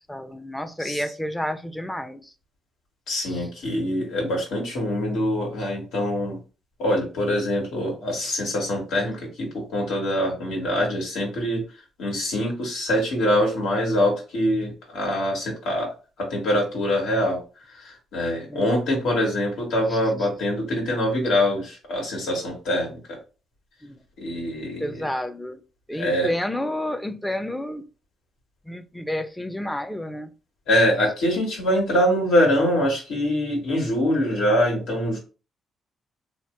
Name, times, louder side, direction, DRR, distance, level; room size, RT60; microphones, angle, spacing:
voice 1, 0.0-2.3 3.3-3.5 18.5-18.7 19.9-20.0 23.8-24.0 24.8-25.6 25.9-27.8 28.7-30.3, left 1 dB, 5° left, 0.4 m, -30 dB
voice 2, 3.1-6.4 6.8-11.6 12.0-15.9 16.2-17.4 17.7-23.2 24.2-25.0 25.9-26.3 30.7-35.2, equal, 85° left, 1.5 m, -24 dB
2.9 x 2.0 x 3.2 m
cardioid pair, 90°, 0 cm